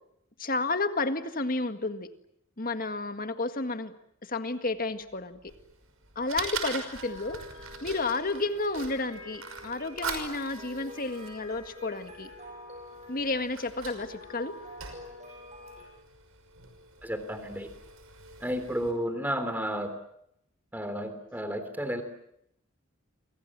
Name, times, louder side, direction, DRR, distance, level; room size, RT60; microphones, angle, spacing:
voice 1, 0.4-2.1 2.6-3.9 4.2-5.4 6.2-7.4 7.8-12.3 13.1-14.6, left 3 dB, 40° left, 9 dB, 1.8 m, -31 dB
sound 1, 4.8-15.9, left 1 dB, 35° right, 6.4 m, -47 dB
Fire, 5.5-18.9, right 5 dB, 80° right, 5.8 m, -43 dB
voice 2, 17.0-17.7 18.4-20.0 20.7-22.0, equal, 10° right, 9 dB, 3.5 m, -32 dB
29.0 x 25.0 x 7.5 m, 0.74 s
head